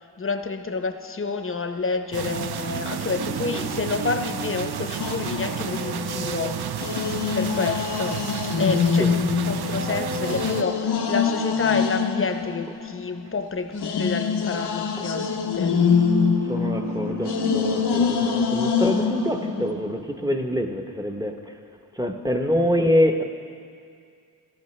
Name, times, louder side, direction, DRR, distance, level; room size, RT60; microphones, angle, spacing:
voice 1, 0.2-6.7 7.3-8.2 8.6-15.8, left 4 dB, 35° left, 7 dB, 0.7 m, -29 dB
sound 1, 2.1-10.6, right 8 dB, 70° right, 0.5 m, -31 dB
sound 2, 2.3-8.1 9.1-12.2 14.9-20.1 20.4-20.5, right 1 dB, 45° right, 3.6 m, -34 dB
sound 3, 5.0-6.2 6.8-13.3 13.8-19.7, left 6 dB, 85° left, 0.8 m, -25 dB
voice 2, 16.5-21.4 22.0-23.2, equal, 10° right, 4 dB, 0.8 m, -25 dB
18.0 x 13.5 x 3.2 m, 2.3 s
wide cardioid pair, 90°, 39 cm